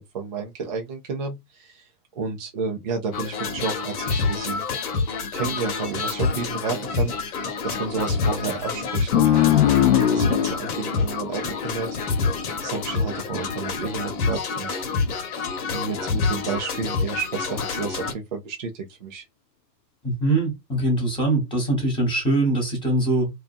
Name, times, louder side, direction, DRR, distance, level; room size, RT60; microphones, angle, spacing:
voice 1, 0.0-1.8 2.1-4.6 5.3-11.9 12.2-12.3 12.6-14.8 15.7-19.2, right 4 dB, 30° right, 0.3 m, -31 dB
sound 1, 3.1-18.1, left 4 dB, 65° left, 1.0 m, -27 dB
sound 2, 9.1-12.3, left 12 dB, 35° left, 0.4 m, -20 dB
voice 2, 20.0-23.3, right 2 dB, 10° left, 1.1 m, -22 dB
2.5 x 2.3 x 2.5 m
hypercardioid pair, 120°, 50 cm